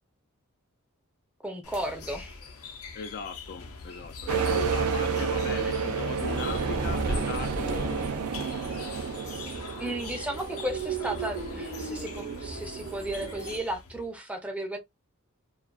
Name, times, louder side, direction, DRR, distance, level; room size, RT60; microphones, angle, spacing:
voice 1, 1.4-2.4 9.3-9.5 9.8-14.8, right 1 dB, 5° right, 0.5 m, -34 dB
sound 1, 1.6-14.1, left 4 dB, 75° left, 0.7 m, -43 dB
voice 2, 2.9-8.1 9.8-9.9, left 5 dB, 45° left, 0.3 m, -39 dB
sound 2, 4.3-9.9, right 5 dB, 75° right, 0.5 m, -29 dB
sound 3, 6.2-13.6, right 5 dB, 50° right, 0.8 m, -36 dB
2.4 x 2.4 x 2.3 m
head